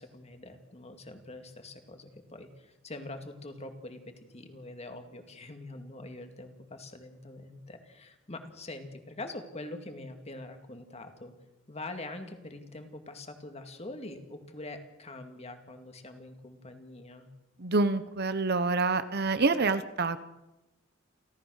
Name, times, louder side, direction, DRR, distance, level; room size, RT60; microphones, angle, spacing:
voice 1, 0.0-11.3 11.7-17.3, left 2 dB, 30° left, 6 dB, 2.3 m, -44 dB
voice 2, 17.6-20.2, right 3 dB, 50° right, 12 dB, 1.0 m, -27 dB
29.5 x 14.0 x 6.5 m, 0.98 s
head